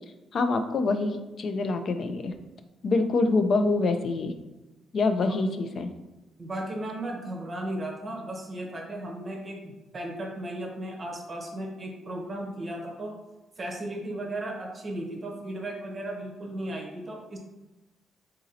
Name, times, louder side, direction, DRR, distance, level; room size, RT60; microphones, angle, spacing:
voice 1, 0.3-2.3 2.8-4.3 4.9-5.9, left 3 dB, 45° left, 8 dB, 0.4 m, -25 dB
voice 2, 6.4-13.2 13.6-17.4, right 1 dB, 30° right, 0 dB, 0.7 m, -35 dB
3.9 x 2.6 x 4.1 m, 1.1 s
cardioid pair, 145°, 0 cm